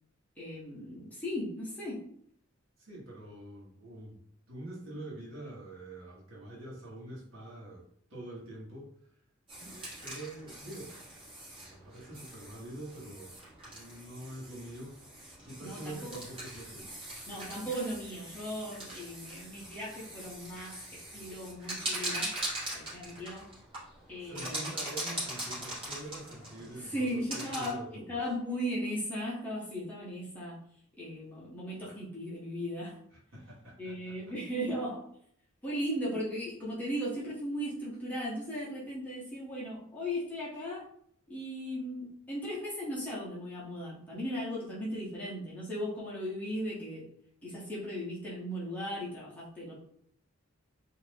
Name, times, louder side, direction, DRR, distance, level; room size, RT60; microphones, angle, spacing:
voice 1, 0.4-2.1 15.6-16.2 17.3-22.3 22.7-23.5 24.1-24.7 26.8-30.6 31.0-33.0 33.8-35.1 35.6-40.8 41.3-47.1 47.4-49.8, equal, 5° left, -7 dB, 0.7 m, -37 dB
voice 2, 2.8-4.2 4.5-8.9 9.6-10.9 11.6-13.3 13.6-15.0 15.4-16.9 24.2-28.2 33.3-34.3, right 1 dB, 75° right, -5 dB, 1.2 m, -45 dB
sound 1, 9.5-27.7, right 1 dB, 25° right, 1.1 m, -42 dB
2.6 x 2.4 x 3.3 m, 0.66 s
head